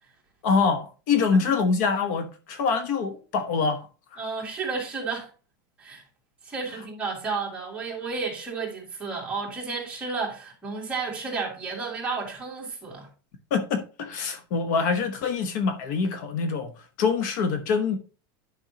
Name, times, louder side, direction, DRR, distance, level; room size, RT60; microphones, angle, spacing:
voice 1, 0.4-3.9 4.1-4.2 13.5-16.7 17.0-18.0, left 5 dB, 55° left, 1.1 m, -25 dB
voice 2, 4.2-5.3 5.8-6.0 6.4-13.1, right 4 dB, 10° right, 2.4 m, -32 dB
10.0 x 5.5 x 2.9 m
supercardioid pair, 165°, 12 cm